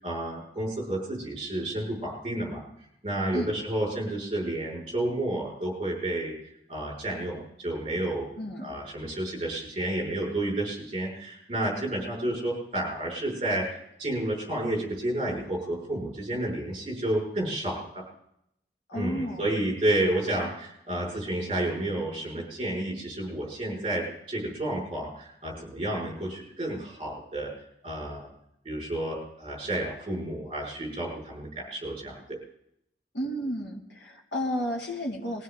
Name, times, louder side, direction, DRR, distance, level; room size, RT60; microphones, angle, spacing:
voice 1, 0.0-2.6 3.0-6.4 6.7-8.3 8.6-17.9 18.9-27.5 27.8-28.3 28.6-32.4, right 1 dB, 30° right, -2 dB, 6.1 m, -31 dB
voice 2, 8.4-8.7 18.9-19.5 33.1-35.4, equal, 85° left, 0 dB, 2.8 m, -32 dB
21.5 x 16.0 x 4.0 m, 0.78 s
head